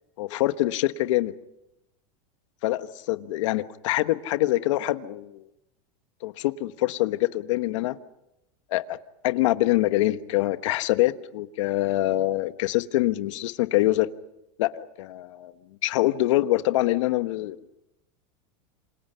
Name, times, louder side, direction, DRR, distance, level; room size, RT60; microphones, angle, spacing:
voice 1, 0.2-1.3 2.6-5.5 6.2-8.0 8.7-9.0 9.2-14.1 14.6-15.5 15.8-17.6, left 16 dB, 70° left, 12 dB, 1.2 m, -25 dB
28.0 x 26.5 x 5.7 m, 0.88 s
supercardioid pair, 150°, 17 cm